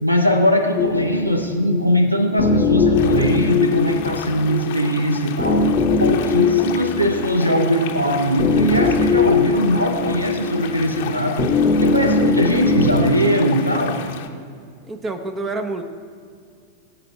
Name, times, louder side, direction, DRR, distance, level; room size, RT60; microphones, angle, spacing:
voice 1, 0.0-5.7 6.0-11.5 11.8-14.0, equal, 90° right, 6 dB, 0.9 m, -20 dB
sound 1, 0.8-13.1, left 4 dB, 25° left, 1.0 m, -21 dB
sound 2, 2.9-14.3, left 9 dB, 55° left, 0.9 m, -34 dB
voice 2, 14.9-15.8, right 3 dB, 20° right, 6 dB, 0.9 m, -27 dB
19.0 x 8.7 x 4.3 m, 2.3 s
figure-of-eight pair, 90°, 0 cm